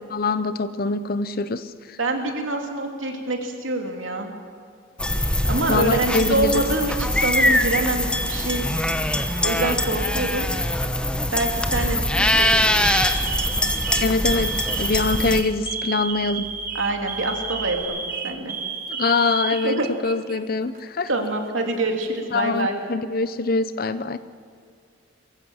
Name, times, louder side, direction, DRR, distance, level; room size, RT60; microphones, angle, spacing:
voice 1, 0.1-2.0 5.7-6.5 14.0-16.5 19.0-21.1 22.3-24.2, left 3 dB, 50° left, 13 dB, 0.7 m, -24 dB
voice 2, 2.0-4.3 5.5-8.7 9.4-10.5 11.3-12.9 16.7-18.5 19.6-19.9 21.1-22.8, right 2 dB, 75° right, 2 dB, 2.7 m, -26 dB
sound 1, 5.0-15.4, left 1 dB, 5° left, 0.9 m, -23 dB
Alarm, 9.9-10.4 11.3-11.6 12.1-12.3 12.8-20.4 20.7-20.8 21.7-22.4, right 6 dB, 45° right, 1.5 m, -32 dB
sound 2, 12.2-17.8, equal, 10° right, 3.5 m, -46 dB
22.0 x 15.0 x 7.9 m, 2.2 s
head